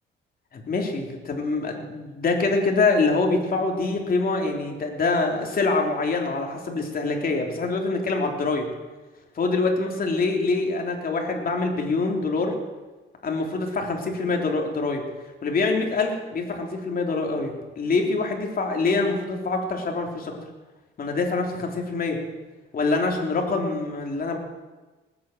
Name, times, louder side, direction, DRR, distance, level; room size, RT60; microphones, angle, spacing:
voice 1, 0.5-8.7 9.3-12.5 13.2-15.0 15.4-20.3 21.0-22.2 22.7-24.4, left 3 dB, 45° left, 2 dB, 3.2 m, -25 dB
19.0 x 8.8 x 7.7 m, 1.2 s
cardioid pair, 90°, 20 cm